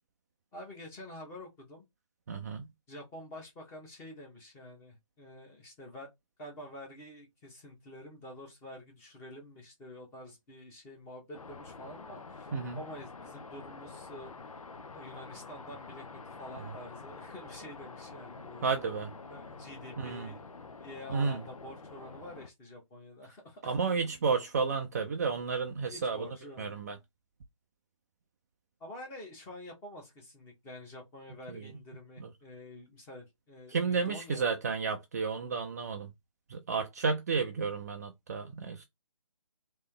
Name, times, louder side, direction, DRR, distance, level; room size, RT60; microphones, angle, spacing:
voice 1, 0.5-1.8 2.9-6.1 6.4-14.3 14.9-18.6 19.3-20.4 20.8-23.7 25.9-26.7 28.8-34.4, left 1 dB, 15° left, 1.4 m, -48 dB
voice 2, 2.3-2.7 12.5-12.8 18.6-19.1 20.0-20.3 21.1-21.4 23.6-26.3 26.6-27.0 31.5-31.7 32.2-32.3 33.7-36.1 36.5-38.8, right 5 dB, 30° right, 0.4 m, -32 dB
sound 1, 11.3-22.5, left 4 dB, 80° left, 0.8 m, -47 dB
3.3 x 2.9 x 3.7 m
figure-of-eight pair, 150°, 18 cm